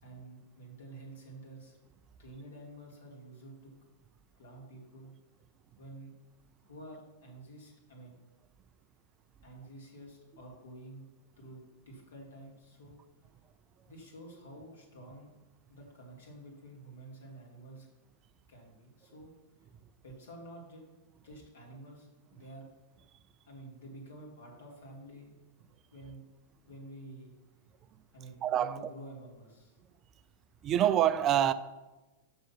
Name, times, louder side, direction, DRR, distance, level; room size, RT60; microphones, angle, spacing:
voice 1, 0.0-1.8 2.2-3.7 4.3-5.1 5.8-6.1 6.6-8.2 9.4-11.1 11.4-13.0 13.9-15.4 15.7-17.9 18.5-19.3 20.0-20.8 21.2-22.7 23.5-25.3 25.9-26.2 26.6-27.3 28.1-29.8, right 1 dB, 65° left, 2.5 m, -50 dB
voice 2, 28.4-28.9 30.6-31.5, right 11 dB, 30° right, 0.3 m, -26 dB
6.2 x 5.6 x 5.8 m
figure-of-eight pair, 95°, 0 cm